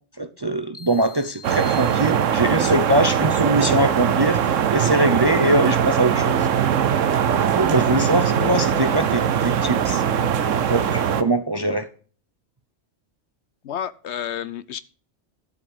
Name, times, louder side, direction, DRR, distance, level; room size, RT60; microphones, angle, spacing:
voice 1, 0.2-4.4 4.7-6.5 7.4-10.0 10.4-11.9, right 1 dB, 25° right, 0.6 m, -22 dB
sound 1, 0.7-2.7, left 5 dB, 30° left, 1.4 m, -44 dB
sound 2, 1.4-11.2, right 8 dB, 90° right, 1.2 m, -21 dB
voice 2, 13.6-14.8, left 9 dB, 65° left, 0.9 m, -30 dB
11.5 x 7.8 x 5.4 m
omnidirectional pair, 1.3 m